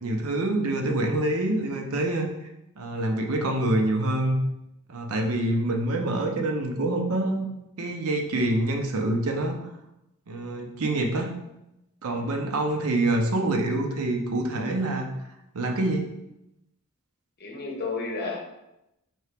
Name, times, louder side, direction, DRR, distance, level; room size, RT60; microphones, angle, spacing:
voice 1, 0.0-2.3 2.8-4.4 4.9-7.5 7.8-9.6 10.3-11.3 12.0-15.1 15.5-16.0, right 1 dB, 75° right, 3 dB, 0.6 m, -26 dB
voice 2, 12.1-12.4 17.4-18.4, left 3 dB, 45° left, -1 dB, 0.9 m, -32 dB
4.4 x 2.8 x 3.4 m, 0.89 s
head